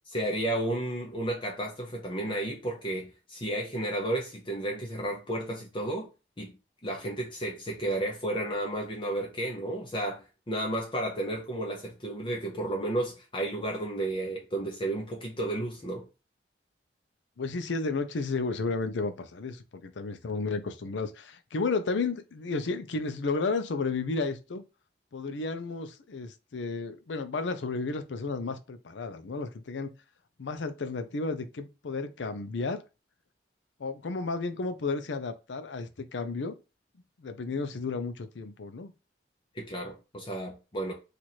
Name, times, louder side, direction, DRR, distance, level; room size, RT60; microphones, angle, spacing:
voice 1, 0.1-6.1 6.4-6.6 6.8-16.0 39.5-40.9, right 1 dB, 30° left, 0.7 m, -32 dB
voice 2, 17.4-24.6 25.1-29.9 30.4-32.8 33.8-36.5 37.2-38.9, left 3 dB, 90° left, 0.5 m, -32 dB
3.1 x 2.5 x 4.1 m
head